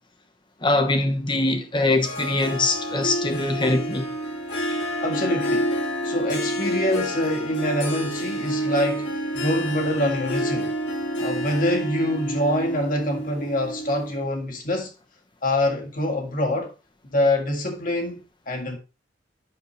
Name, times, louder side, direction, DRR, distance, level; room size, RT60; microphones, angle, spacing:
voice 1, 0.6-4.1, left 2 dB, 25° left, 1.1 m, -23 dB
Harp, 2.0-14.2, equal, 70° left, 2.4 m, -28 dB
voice 2, 5.0-5.7 6.0-10.7 11.2-14.9 15.4-16.7 17.0-18.8, left 1 dB, 50° left, 1.8 m, -25 dB
9.5 x 6.4 x 3.1 m
head